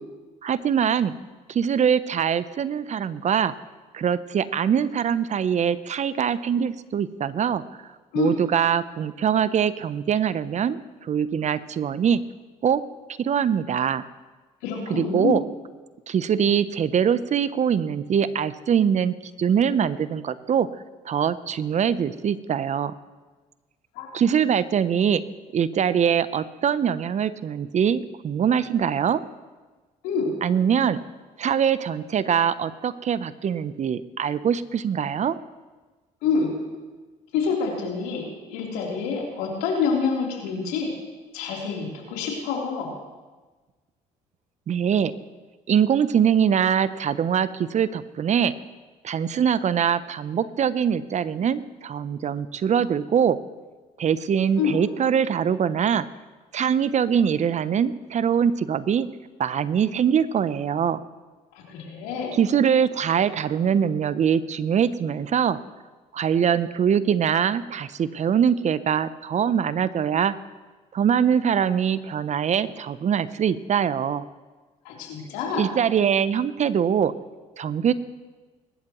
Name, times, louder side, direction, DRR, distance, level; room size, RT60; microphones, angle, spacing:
voice 1, 0.4-1.1 1.5-3.5 3.9-7.6 8.1-12.2 12.6-12.8 13.2-14.0 14.9-15.4 16.1-20.7 21.1-22.9 24.1-25.2 25.5-29.2 30.4-31.0 31.4-35.4 44.7-45.1 45.7-48.5 49.0-53.4 54.0-56.1 56.5-59.1 59.4-61.0 62.3-65.6 66.1-70.3 70.9-74.2 75.6-77.1 77.6-77.9, right 8 dB, 45° right, 15 dB, 0.7 m, -23 dB
voice 2, 14.6-15.4 23.9-24.2 30.0-30.3 36.2-36.5 37.3-38.2 38.5-40.9 41.3-42.9 54.6-54.8 61.7-62.3 74.8-75.6, left 5 dB, 85° left, -2 dB, 3.5 m, -27 dB
23.0 x 12.0 x 3.1 m, 1.3 s
hypercardioid pair, 60°, 16 cm